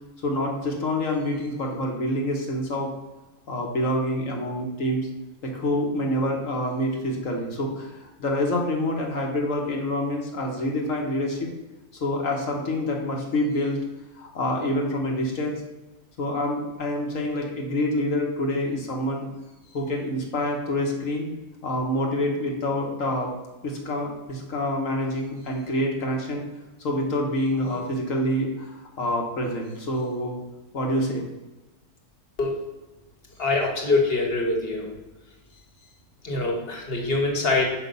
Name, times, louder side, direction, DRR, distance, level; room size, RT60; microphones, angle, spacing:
voice 1, 0.2-2.9 3.5-5.1 5.4-11.5 11.9-13.8 14.1-15.6 16.2-19.3 19.7-21.3 21.6-23.3 23.6-26.4 26.8-30.4 30.7-31.2, left 1 dB, 60° left, 1 dB, 1.5 m, -27 dB
voice 2, 33.4-34.9 36.2-37.7, left 3 dB, 40° left, 1 dB, 1.5 m, -24 dB
6.1 x 5.4 x 5.3 m, 1.1 s
omnidirectional pair, 1.6 m